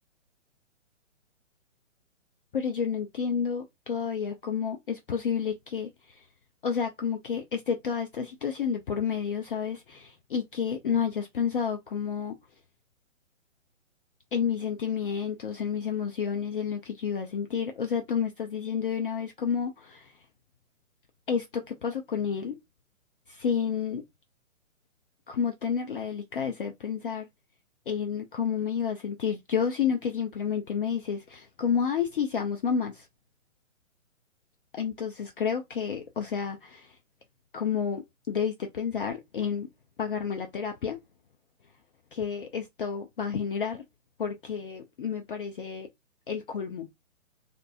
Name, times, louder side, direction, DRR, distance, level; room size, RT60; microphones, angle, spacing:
voice 1, 2.5-6.2 6.6-12.3 14.3-20.1 21.3-22.6 23.3-24.0 25.3-27.3 27.9-33.1 34.7-37.0 37.5-39.7 40.0-41.0 42.1-43.8 44.2-45.9 46.3-46.9, left 7 dB, 45° left, 0.4 m, -30 dB
2.5 x 2.1 x 2.6 m
hypercardioid pair, 135°, 40 cm